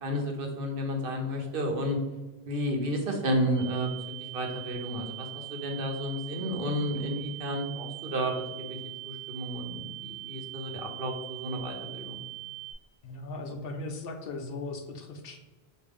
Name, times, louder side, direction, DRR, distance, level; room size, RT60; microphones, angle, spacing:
voice 1, 0.0-2.0 2.5-3.9 4.3-8.4 8.7-8.8 9.0-12.2, equal, 60° right, 2 dB, 1.0 m, -32 dB
sound 1, 3.6-12.7, right 20 dB, 10° left, 1.1 m, -42 dB
voice 2, 13.0-15.4, left 2 dB, 70° left, 4 dB, 0.7 m, -38 dB
5.1 x 2.5 x 3.5 m, 1.2 s
omnidirectional pair, 1.1 m